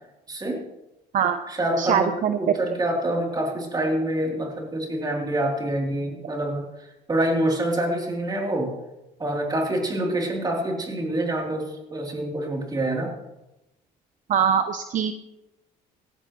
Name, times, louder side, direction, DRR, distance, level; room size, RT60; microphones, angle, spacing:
voice 1, 0.3-0.6 1.5-8.7 9.2-13.1, right 1 dB, 25° right, 0 dB, 3.4 m, -26 dB
voice 2, 1.8-2.4 14.3-15.1, right 8 dB, 50° right, 9 dB, 0.8 m, -22 dB
17.0 x 15.5 x 3.2 m, 0.95 s
cardioid pair, 110°, 17 cm